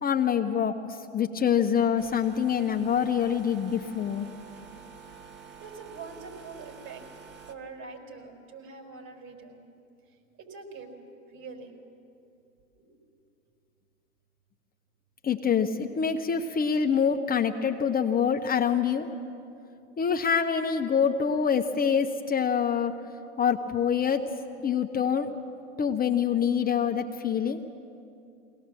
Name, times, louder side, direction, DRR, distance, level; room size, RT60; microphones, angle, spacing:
voice 1, 0.0-4.3 15.2-19.1 20.0-22.9 23.4-24.3 24.6-25.3 25.8-27.6, left 7 dB, 25° left, 4 dB, 0.9 m, -25 dB
sound 1, 2.0-7.5, right 6 dB, 30° right, 1.9 m, -48 dB
voice 2, 5.6-7.0 7.5-9.7 10.4-10.9 11.3-11.7 12.7-13.0, right 4 dB, 50° right, 2 dB, 4.9 m, -44 dB
22.0 x 18.0 x 7.6 m, 2.6 s
hypercardioid pair, 85°, 37 cm